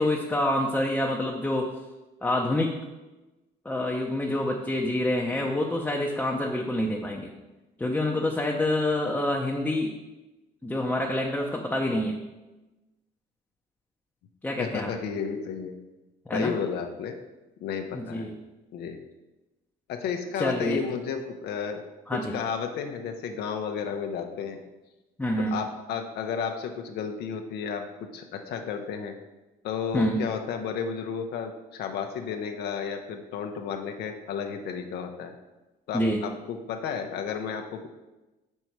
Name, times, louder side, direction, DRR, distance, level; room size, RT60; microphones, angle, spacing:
voice 1, 0.0-1.7 2.2-2.7 3.6-7.3 7.8-9.9 10.6-12.2 14.4-14.9 16.3-16.5 17.9-18.3 20.4-20.8 22.1-22.3 25.2-25.6 29.9-30.2 35.9-36.2, left 1 dB, 10° left, -1 dB, 0.7 m, -27 dB
voice 2, 14.6-15.8 16.3-17.2 17.6-18.3 18.7-19.0 19.9-21.8 22.1-24.6 25.5-29.1 29.6-35.3 35.9-37.9, left 6 dB, 75° left, 4 dB, 0.7 m, -32 dB
6.1 x 5.5 x 4.5 m, 1.1 s
cardioid pair, 110°, 17 cm